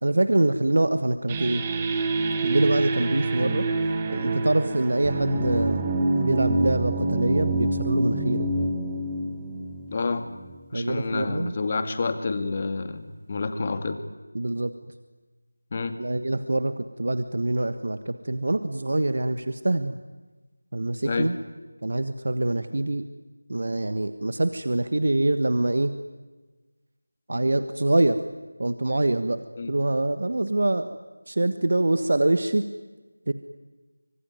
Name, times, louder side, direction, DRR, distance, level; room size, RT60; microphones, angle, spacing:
voice 1, 0.0-1.6 2.4-3.7 4.1-5.8 6.1-8.5 10.7-11.6 14.3-14.7 16.0-20.0 20.7-21.4 21.8-23.0 23.5-25.9 27.3-28.2 28.6-29.4 29.7-31.0 31.3-32.6 33.3-33.4, right 2 dB, 60° right, 10 dB, 1.4 m, -24 dB
sound 1, 1.3-10.6, right 2 dB, 15° right, 1.9 m, -27 dB
voice 2, 9.9-10.3 10.7-14.0 15.7-15.9 21.0-21.3 29.6-29.7, left 4 dB, 30° left, 8 dB, 2.3 m, -28 dB
25.5 x 23.5 x 9.5 m, 1.3 s
figure-of-eight pair, 170°, 0 cm